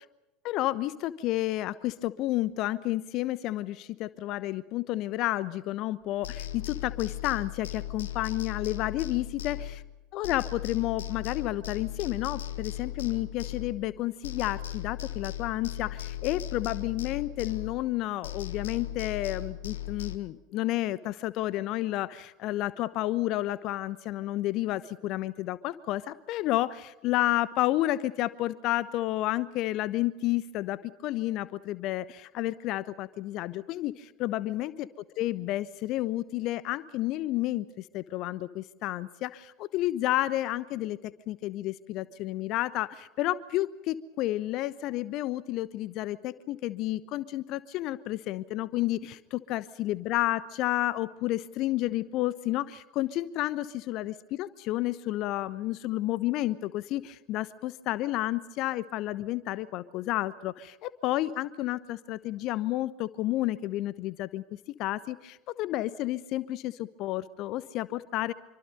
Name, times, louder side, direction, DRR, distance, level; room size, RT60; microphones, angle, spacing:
voice 1, 0.4-9.8 10.1-34.9 35.2-49.2 49.5-64.4 64.8-68.3, left 15 dB, 45° left, 17 dB, 1.0 m, -31 dB
sound 1, 6.2-10.0 10.2-14.0 14.2-18.0 18.2-20.2, left 12 dB, 70° left, 1.4 m, -37 dB
26.5 x 25.0 x 5.3 m, 0.98 s
figure-of-eight pair, 75°, 0 cm